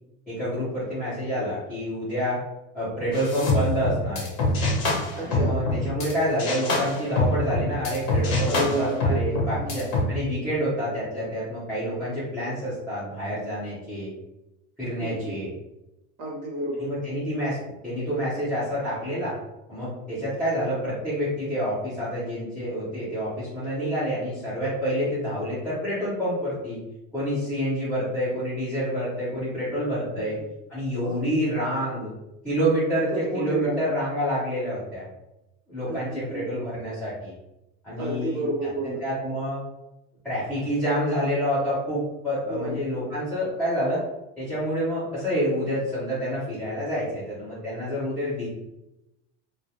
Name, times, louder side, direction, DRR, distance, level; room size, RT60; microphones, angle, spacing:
voice 1, 0.3-2.4 2.7-4.3 5.2-14.1 14.8-15.5 16.8-17.6 17.8-19.4 19.7-26.8 27.1-30.4 30.7-32.1 32.4-35.1 35.7-37.3 37.8-38.4 39.0-39.6 40.2-44.0 44.4-48.5, equal, ahead, -14 dB, 0.6 m, -28 dB
sound 1, 3.1-6.1 6.4-10.0, left 2 dB, 45° left, 0.7 m, -25 dB
voice 2, 5.2-5.6 8.5-9.8 15.0-15.3 16.2-16.9 23.8-24.1 30.1-30.4 31.0-31.1 32.9-33.8 35.9-36.4 38.0-39.0 42.5-42.8, right 1 dB, 50° right, -3 dB, 0.9 m, -31 dB
2.3 x 2.1 x 2.7 m, 0.94 s
cardioid pair, 180°, 30 cm